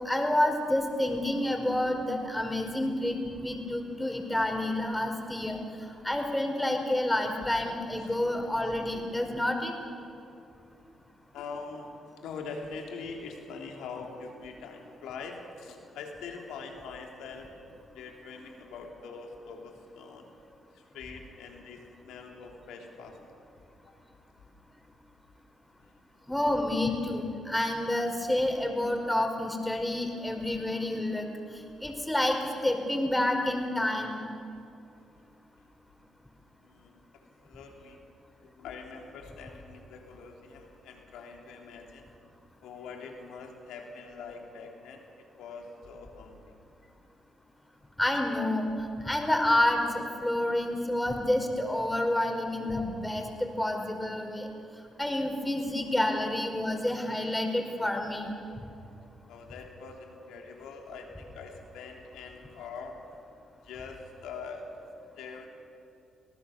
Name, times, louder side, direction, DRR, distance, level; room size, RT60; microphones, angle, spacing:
voice 1, 0.0-5.6 6.0-9.7 26.3-31.2 31.5-32.4 32.6-34.2 48.0-48.7 49.0-54.5 55.0-58.3, left 1 dB, 10° left, 3 dB, 5.1 m, -29 dB
voice 2, 11.3-11.9 12.2-17.5 17.9-20.3 20.7-23.4 36.6-38.0 38.4-42.0 42.6-45.0 45.4-46.6 59.3-63.0 63.6-64.7 65.2-65.5, left 4 dB, 75° left, 2 dB, 3.3 m, -43 dB
25.5 x 18.5 x 7.3 m, 2.7 s
hypercardioid pair, 45°, 0 cm